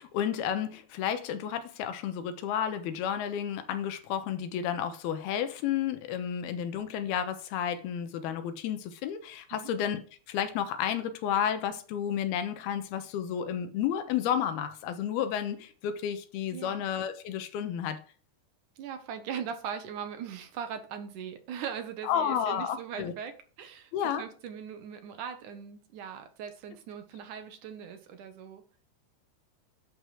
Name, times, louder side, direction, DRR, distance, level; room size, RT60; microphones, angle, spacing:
voice 1, 0.0-10.0 10.3-18.0 22.0-23.1 23.9-24.2, left 9 dB, 80° left, 2.9 m, -31 dB
voice 2, 16.5-16.9 18.8-28.6, right 8 dB, 60° right, 2.5 m, -40 dB
11.5 x 5.4 x 6.1 m
omnidirectional pair, 4.6 m